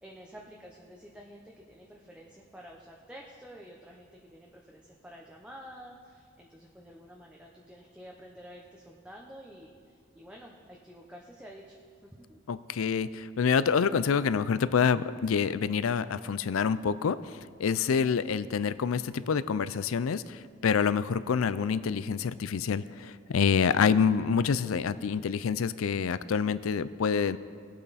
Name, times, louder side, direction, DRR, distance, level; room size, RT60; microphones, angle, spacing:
voice 1, 0.0-12.4, equal, 5° right, -1 dB, 0.8 m, -50 dB
voice 2, 12.5-17.2 17.6-27.4, left 6 dB, 85° left, 16 dB, 0.4 m, -27 dB
19.5 x 8.7 x 4.1 m, 2.1 s
head